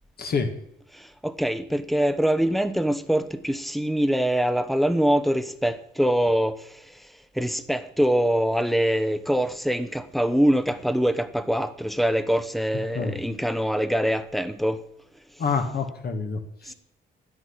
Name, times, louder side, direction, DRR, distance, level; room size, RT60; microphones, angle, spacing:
voice 1, 0.2-0.5 12.9-13.2 15.4-16.7, left 5 dB, 50° left, 1.7 m, -27 dB
voice 2, 0.9-6.7 7.4-14.8 16.7-16.8, equal, ahead, 0.9 m, -24 dB
10.5 x 8.0 x 8.6 m
cardioid pair, 90°, 20 cm